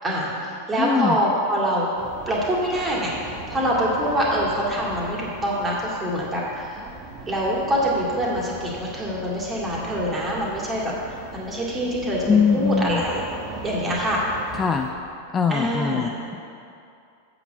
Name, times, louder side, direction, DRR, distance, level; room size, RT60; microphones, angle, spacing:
voice 1, 0.0-1.9 2.3-6.8 7.3-13.2 13.6-14.2 15.5-16.1, equal, 20° right, -4 dB, 2.3 m, -25 dB
voice 2, 0.8-1.2 12.3-13.0 14.6-14.9 15.3-16.4, left 6 dB, 20° left, 4 dB, 0.4 m, -22 dB
sound 1, 2.0-14.9, right 3 dB, 35° right, 1.1 m, -39 dB
8.0 x 6.0 x 6.9 m, 2.5 s
figure-of-eight pair, 90°, 0 cm